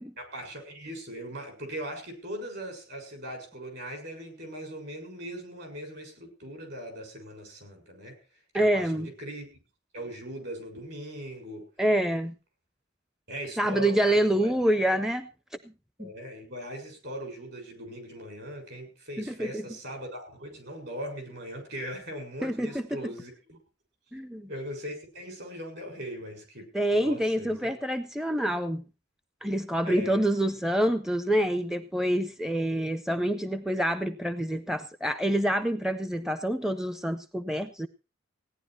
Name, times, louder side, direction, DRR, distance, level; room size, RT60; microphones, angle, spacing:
voice 1, 0.2-8.2 8.5-9.5 9.9-11.7 13.3-14.5 16.0-23.6 24.5-27.7 29.8-30.3, right 1 dB, 60° right, 5 dB, 6.7 m, -40 dB
voice 2, 8.5-9.1 11.8-12.3 13.6-15.3 15.6-15.7 16.0-16.1 19.2-19.7 22.4-22.8 24.1-24.5 26.7-28.8 29.4-37.9, right 1 dB, 5° right, 10 dB, 0.6 m, -27 dB
17.0 x 10.0 x 4.5 m, 0.32 s
head